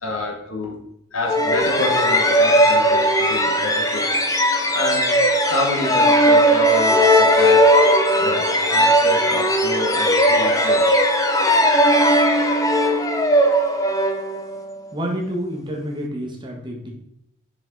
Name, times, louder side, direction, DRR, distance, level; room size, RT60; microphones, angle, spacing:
voice 1, 0.0-0.8 1.1-4.1 4.4-5.2 5.5-7.7 8.2-11.1, left 2 dB, 80° left, 1 dB, 1.7 m, -28 dB
sound 1, 1.3-14.8, equal, 15° left, 0.6 m, -17 dB
voice 2, 14.9-16.9, equal, 20° right, 0 dB, 1.3 m, -28 dB
6.6 x 5.4 x 3.9 m, 0.76 s
head